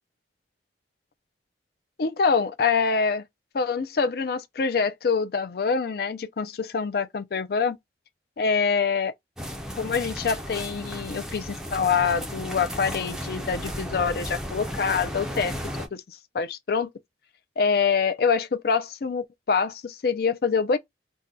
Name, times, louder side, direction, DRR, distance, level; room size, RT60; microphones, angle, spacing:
voice 1, 2.0-3.3 3.5-7.8 8.4-9.1 9.8-15.5 15.9-16.9 17.6-20.8, left 5 dB, 60° left, 0.4 m, -25 dB
sound 1, 9.4-15.9, equal, 5° right, 0.5 m, -34 dB
2.7 x 2.2 x 3.6 m
head